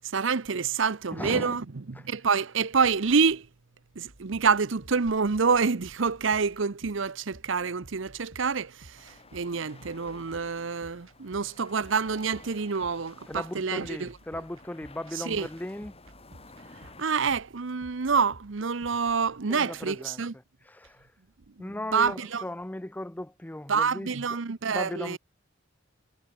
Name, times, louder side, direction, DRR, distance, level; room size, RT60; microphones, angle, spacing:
voice 1, 0.1-3.5 4.0-14.1 15.1-15.5 17.0-20.3 21.6-22.4 23.7-25.2, right 5 dB, 65° right, 0.7 m, -27 dB
voice 2, 1.1-1.6 13.3-15.9 19.5-20.2 20.7-21.1 21.6-24.1 24.7-25.2, left 1 dB, 10° left, 0.5 m, -37 dB
sound 1, 4.1-18.9, right 1 dB, 85° right, 5.5 m, -54 dB
sound 2, 9.0-17.1, left 3 dB, 30° left, 4.2 m, -53 dB
head